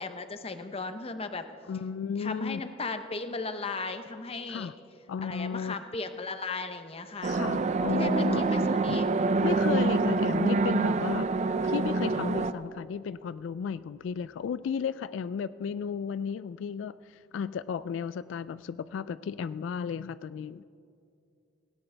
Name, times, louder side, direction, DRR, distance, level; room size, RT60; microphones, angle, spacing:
voice 1, 0.0-1.5 2.2-4.7 5.2-9.1, left 3 dB, 30° left, 9 dB, 0.8 m, -36 dB
voice 2, 1.7-2.6 4.5-4.7 5.1-5.8 7.3-9.0 9.4-11.3 11.6-16.9 17.3-20.6, left 7 dB, 85° left, 16 dB, 0.3 m, -34 dB
sound 1, 7.2-12.5, right 3 dB, 40° right, 0.4 m, -26 dB
17.5 x 17.0 x 3.4 m, 2.5 s
head